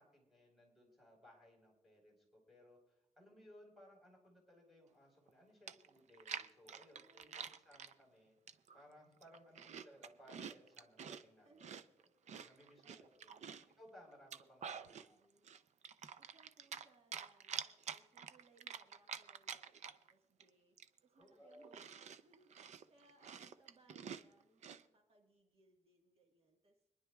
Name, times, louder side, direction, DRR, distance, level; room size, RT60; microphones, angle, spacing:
voice 1, 0.0-8.3 8.7-11.7 12.0-13.3 13.8-15.2 21.2-21.8, equal, ahead, -2 dB, 4.5 m, -63 dB
Chewing mastication, 5.3-5.4 5.7-7.9 8.5-8.8 9.2-11.2 11.6-13.7 14.1-15.1 15.4-16.9 17.1-20.1 20.4-20.5 20.8-24.8, right 7 dB, 75° right, 0.5 m, -48 dB
voice 2, 6.9-7.6 11.4-11.8 12.8-13.5 14.7-15.6 16.2-26.8, right 3 dB, 50° right, 1 dB, 1.5 m, -71 dB
25.5 x 10.5 x 2.3 m, 0.91 s
wide cardioid pair, 160°, 12 cm